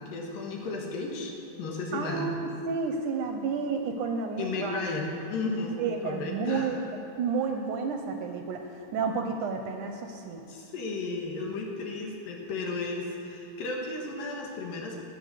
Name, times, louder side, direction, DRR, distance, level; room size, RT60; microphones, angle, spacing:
voice 1, 0.1-1.3 1.6-2.3 4.4-5.8 6.0-6.8 10.5-15.0, left 3 dB, 75° left, 0 dB, 3.0 m, -34 dB
voice 2, 1.9-4.8 5.8-6.8 7.2-10.4, right 5 dB, 75° right, 4 dB, 2.0 m, -31 dB
19.5 x 8.0 x 6.5 m, 2.8 s
omnidirectional pair, 4.1 m